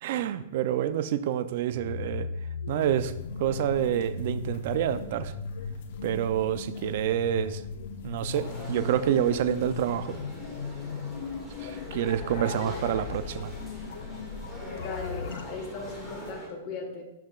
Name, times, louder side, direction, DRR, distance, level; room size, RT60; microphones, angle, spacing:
voice 1, 0.0-2.3 2.7-3.1 3.4-5.3 6.0-7.6 8.0-10.1 11.6-13.5, right 10 dB, 50° right, 12 dB, 0.5 m, -28 dB
sound 1, 1.7-15.5, left 5 dB, 75° left, 0.5 m, -37 dB
sound 2, 2.7-16.3, left 3 dB, 55° left, 0.9 m, -48 dB
sound 3, 8.3-16.5, equal, 5° right, 1.9 m, -43 dB
voice 2, 12.4-12.7 14.7-17.0, left 4 dB, 35° left, 2 dB, 1.4 m, -38 dB
11.5 x 5.7 x 2.4 m, 0.94 s
hypercardioid pair, 160°, 0 cm